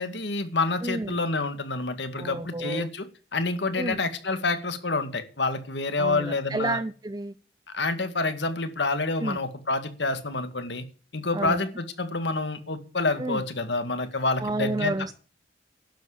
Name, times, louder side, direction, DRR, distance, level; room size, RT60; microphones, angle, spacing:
voice 1, 0.0-3.1 3.3-6.8 7.7-10.8 11.1-15.1, left 3 dB, 75° left, 2.1 m, -28 dB
voice 2, 0.8-1.2 2.2-2.9 3.8-4.0 6.0-7.3 9.2-9.4 11.3-11.6 13.2-13.4 14.4-15.1, right 2 dB, 20° right, 0.5 m, -30 dB
11.5 x 7.5 x 8.5 m
head